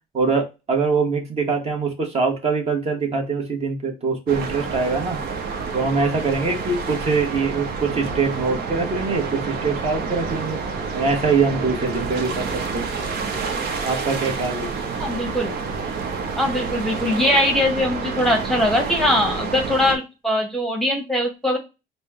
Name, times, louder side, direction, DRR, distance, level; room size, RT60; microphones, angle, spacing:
voice 1, 0.1-5.2 5.7-10.6 10.9-12.9 13.8-14.9, right 4 dB, 40° right, 2 dB, 1.2 m, -23 dB
sound 1, 4.3-20.0, right 5 dB, 65° right, 0.9 m, -28 dB
voice 2, 15.0-15.6 16.4-21.6, left 1 dB, ahead, 2 dB, 0.9 m, -21 dB
4.2 x 2.1 x 3.5 m, 0.26 s
cardioid pair, 110°, 17 cm